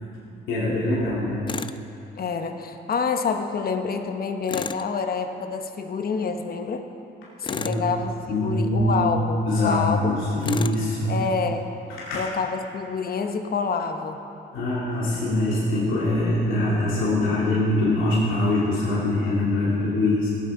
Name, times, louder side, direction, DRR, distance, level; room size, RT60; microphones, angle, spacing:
voice 1, 0.5-1.5 7.6-7.8 8.3-9.0 9.4-11.1 12.0-12.2 14.5-20.3, left 1 dB, 85° left, -7 dB, 2.4 m, -23 dB
Tools, 1.5-1.8 4.5-4.9 7.4-7.9 10.4-10.8, left 5 dB, 25° left, 0.4 m, -31 dB
voice 2, 2.2-6.8 7.4-10.1 11.1-11.7 12.1-14.2, left 5 dB, 50° left, 6 dB, 1.0 m, -27 dB
17.0 x 7.7 x 4.8 m, 3.0 s
cardioid pair, 90°, 20 cm